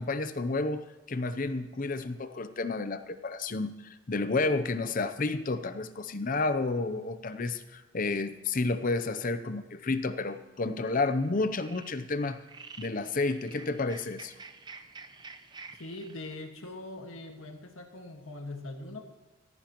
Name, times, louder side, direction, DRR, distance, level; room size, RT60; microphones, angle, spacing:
voice 1, 0.0-12.4 12.8-14.3, left 3 dB, 40° left, 12 dB, 0.6 m, -31 dB
sound 1, 10.2-10.4 10.9-11.3 11.6-16.4, right 4 dB, 20° right, 0.6 m, -49 dB
voice 2, 15.8-19.1, left 2 dB, 85° left, 4 dB, 1.7 m, -42 dB
16.0 x 15.0 x 3.0 m, 1.2 s
head